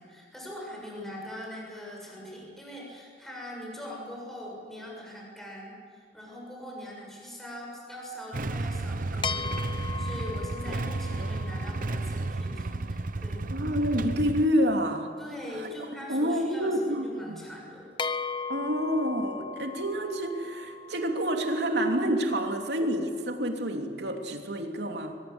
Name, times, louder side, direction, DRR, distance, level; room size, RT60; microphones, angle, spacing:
voice 1, 0.0-13.5 15.2-17.9, equal, ahead, -3 dB, 6.9 m, -42 dB
Motorcycle / Engine starting / Idling, 8.3-14.5, right 2 dB, 50° right, 0.8 m, -32 dB
sound 1, 9.2-12.9 18.0-22.4, left 5 dB, 25° left, 0.8 m, -38 dB
voice 2, 13.5-15.1 15.5-15.7 16.1-17.0 18.5-25.1, equal, 70° right, 3 dB, 3.0 m, -28 dB
23.0 x 21.5 x 8.1 m, 2.3 s
head